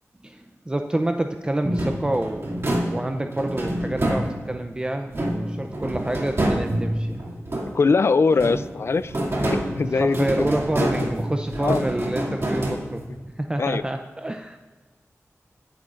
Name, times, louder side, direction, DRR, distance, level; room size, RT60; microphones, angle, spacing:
voice 1, 0.2-5.1 5.5-7.2 9.9-13.0 13.4-14.6, right 1 dB, 20° right, 5 dB, 0.5 m, -28 dB
sound 1, 1.6-4.7 5.1-7.9 8.3-13.2, right 1 dB, 50° right, 2.4 m, -27 dB
voice 2, 7.7-9.2 9.4-10.5 10.8-11.1 11.6-11.8 12.3-12.4 13.6-13.8, left 4 dB, 55° left, 15 dB, 0.4 m, -22 dB
18.5 x 10.0 x 2.5 m, 1.4 s
wide cardioid pair, 100°, 5 cm